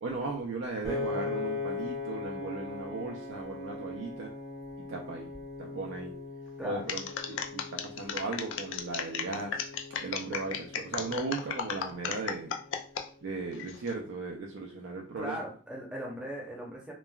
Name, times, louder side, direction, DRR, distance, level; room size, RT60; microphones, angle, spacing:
voice 1, 0.0-4.3 4.8-5.3 5.6-6.2 6.6-7.0 7.3-9.6 10.0-12.5 13.2-15.4, right 3 dB, 85° right, 0 dB, 0.4 m, -37 dB
Piano, 0.8-13.1, left 3 dB, 20° left, 1.0 m, -40 dB
sound 1, 6.9-13.1 13.5-13.9, left 7 dB, 85° left, 0.3 m, -35 dB
voice 2, 15.2-16.9, equal, 5° right, -3 dB, 0.7 m, -38 dB
3.1 x 2.2 x 2.2 m, 0.40 s
head